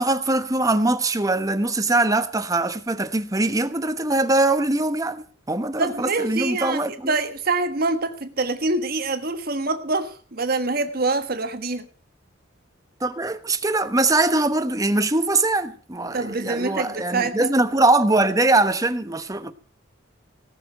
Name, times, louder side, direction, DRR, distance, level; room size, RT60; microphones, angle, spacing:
voice 1, 0.0-7.1 13.0-19.5, right 2 dB, 15° right, 1.1 m, -22 dB
voice 2, 5.8-11.9 16.1-17.5, right 3 dB, 50° right, 1.3 m, -25 dB
18.5 x 6.9 x 9.0 m
head